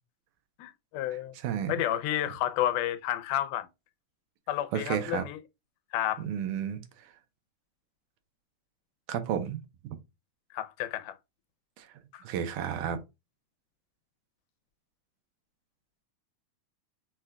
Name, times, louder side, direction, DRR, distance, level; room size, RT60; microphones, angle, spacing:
voice 1, 0.6-1.3 1.7-3.7 4.5-5.4 5.9-6.2 10.5-11.1 12.1-12.2, left 12 dB, 90° left, 2.2 m, -31 dB
voice 2, 1.4-1.7 4.7-5.2 6.2-7.1 9.1-10.0 11.8-11.9 12.2-13.0, right 9 dB, 90° right, 2.3 m, -32 dB
6.0 x 2.2 x 3.6 m
omnidirectional pair, 3.6 m